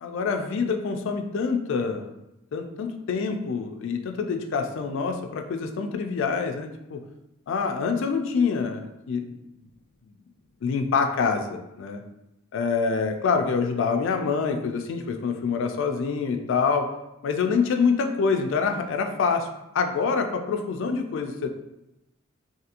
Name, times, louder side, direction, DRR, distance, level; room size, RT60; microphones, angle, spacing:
voice 1, 0.0-2.1 2.5-7.0 7.5-9.4 10.6-12.0 12.5-16.9 17.2-19.5 19.7-21.5, left 5 dB, 65° left, 5 dB, 0.3 m, -26 dB
2.8 x 2.5 x 2.4 m, 0.91 s
head